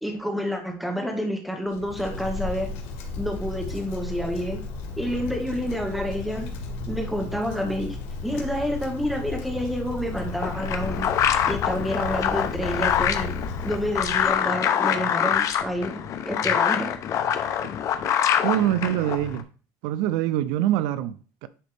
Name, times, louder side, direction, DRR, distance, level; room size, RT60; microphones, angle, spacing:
voice 1, 0.0-2.7 3.2-4.6 5.0-6.5 6.9-8.0 8.2-11.1 11.5-13.3 13.7-16.9, equal, ahead, 1.7 m, -28 dB
Wind, 1.7-14.5, left 4 dB, 90° left, 2.0 m, -34 dB
sound 1, 10.2-19.4, left 9 dB, 45° left, 0.8 m, -25 dB
voice 2, 18.4-19.5 19.8-21.5, right 13 dB, 80° right, 0.5 m, -25 dB
10.0 x 4.1 x 3.5 m
cardioid pair, 140°, 8 cm